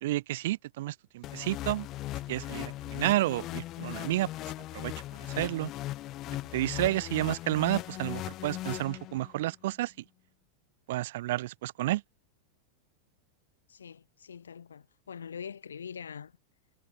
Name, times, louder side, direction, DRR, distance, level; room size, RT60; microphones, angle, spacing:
voice 1, 0.0-1.9 2.3-4.3 4.7-4.9 5.4-5.7 6.5-9.9 10.9-12.0, right 16 dB, 55° right, 0.8 m, -30 dB
sound 1, 1.2-9.4, left 16 dB, 35° left, 0.7 m, -38 dB
voice 2, 13.7-16.4, left 7 dB, 70° left, 1.3 m, -43 dB
figure-of-eight pair, 90°, 0 cm